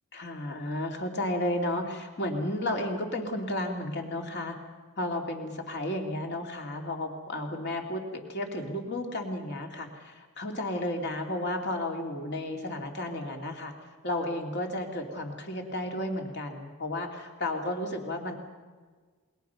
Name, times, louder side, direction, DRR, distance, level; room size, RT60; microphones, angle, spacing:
voice 1, 0.1-4.6 5.0-13.7 14.0-18.3, left 1 dB, 50° left, 2 dB, 2.9 m, -33 dB
28.5 x 22.5 x 5.8 m, 1.4 s
head